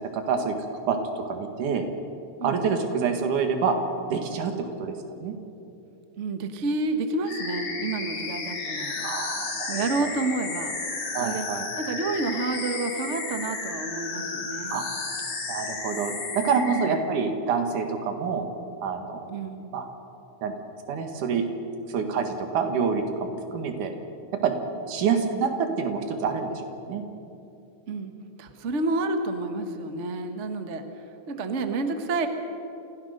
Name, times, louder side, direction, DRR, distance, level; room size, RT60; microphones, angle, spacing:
voice 1, 0.1-0.6 0.9-1.9 2.4-3.8 4.1-5.4 9.0-10.1 11.1-11.7 14.7-14.8 15.5-18.5 18.8-19.2 19.7-19.9 20.4-20.5 20.9-21.5 21.9-23.9 24.4-24.6 24.9-27.0, right 5 dB, 90° right, 5 dB, 3.2 m, -27 dB
voice 2, 6.2-9.1 9.7-10.7 11.2-11.5 11.8-14.9 16.7-17.1 19.3-19.7 27.9-28.1 28.4-32.3, right 3 dB, 45° right, 6 dB, 1.0 m, -29 dB
sound 1, 7.3-16.9, left 4 dB, 80° left, 4.3 m, -33 dB
27.5 x 16.0 x 6.6 m, 2.9 s
omnidirectional pair, 3.4 m